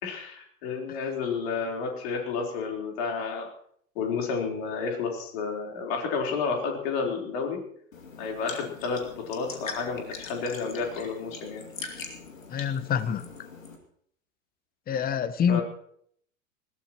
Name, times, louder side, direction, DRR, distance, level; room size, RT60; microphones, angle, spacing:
voice 1, 0.0-3.5 4.0-7.6 8.2-11.6 14.9-15.0 15.5-15.6, left 5 dB, 50° left, 1 dB, 4.1 m, -31 dB
sound 1, 7.9-13.8, left 4 dB, 75° left, 2.7 m, -42 dB
voice 2, 12.5-13.3 14.9-15.6, left 7 dB, 20° left, 14 dB, 1.1 m, -26 dB
20.0 x 17.0 x 3.1 m, 0.65 s
figure-of-eight pair, 90°, 40 cm